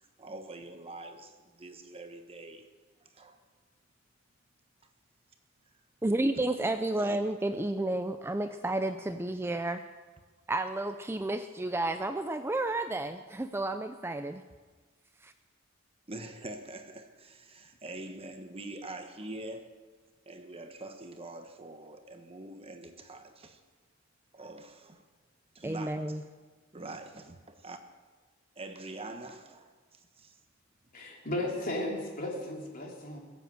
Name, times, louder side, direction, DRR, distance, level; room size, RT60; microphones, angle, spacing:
voice 1, 0.0-2.7 3.0-3.4 4.8-4.9 6.3-7.2 16.1-19.7 20.3-23.6 24.3-25.0 25.5-26.2 26.7-27.8 28.6-30.4, right 2 dB, 30° right, 1.0 m, -45 dB
voice 2, 6.0-9.8 10.5-14.4 15.2-15.3 25.6-26.2, right 2 dB, 10° right, 0.4 m, -31 dB
voice 3, 30.9-33.2, left 1 dB, 45° left, 3.4 m, -35 dB
21.0 x 7.9 x 7.7 m
head